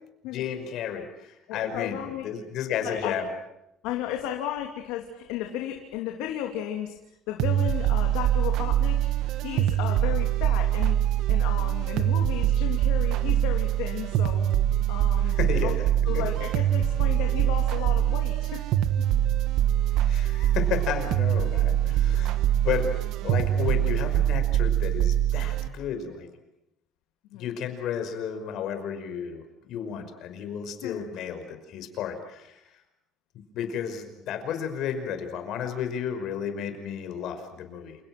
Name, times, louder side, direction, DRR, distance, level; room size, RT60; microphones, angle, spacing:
voice 1, 0.3-3.3 15.2-15.7 16.1-16.2 19.9-22.4 22.6-22.9 23.2-26.3 27.3-29.4 29.7-32.6 33.5-38.0, left 8 dB, 55° left, 8 dB, 5.5 m, -32 dB
voice 2, 1.5-2.3 2.8-3.2 3.8-6.9 7.3-9.1 9.4-14.5 14.9-15.4 15.6-15.8 16.1-18.6 20.4-20.5 27.3-27.4 30.8-31.1, left 11 dB, 90° left, 2 dB, 3.1 m, -34 dB
sound 1, 7.4-25.7, right 11 dB, 65° right, 1.6 m, -24 dB
30.0 x 28.5 x 6.2 m, 0.84 s
cardioid pair, 155°, 0 cm